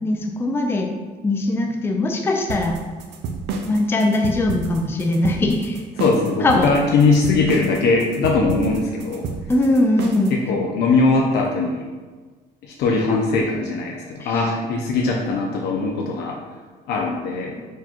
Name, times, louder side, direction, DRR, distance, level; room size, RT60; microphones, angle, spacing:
voice 1, 0.0-0.9 1.2-2.8 3.7-5.8 6.4-6.7 9.5-10.3 14.2-14.4 17.6-17.7, left 2 dB, 15° left, 2 dB, 0.4 m, -20 dB
sound 1, 2.5-10.4, right 4 dB, 85° right, 0.5 m, -29 dB
voice 2, 6.0-9.3 10.3-11.9 12.6-16.4 16.9-17.6, left 3 dB, 75° left, 0 dB, 0.6 m, -20 dB
4.7 x 2.3 x 4.3 m, 1.4 s
cardioid pair, 110°, 17 cm